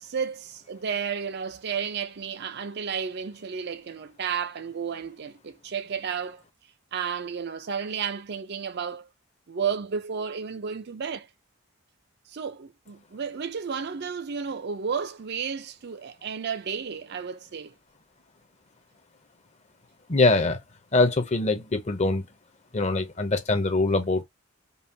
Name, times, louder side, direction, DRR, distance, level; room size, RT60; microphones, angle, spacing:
voice 1, 0.0-6.4 6.9-9.1 9.5-11.3 12.3-17.7, right 6 dB, 50° right, 0.5 m, -32 dB
voice 2, 20.1-20.6 20.9-22.3 22.7-24.2, left 3 dB, 35° left, 0.8 m, -23 dB
5.4 x 2.4 x 2.7 m
head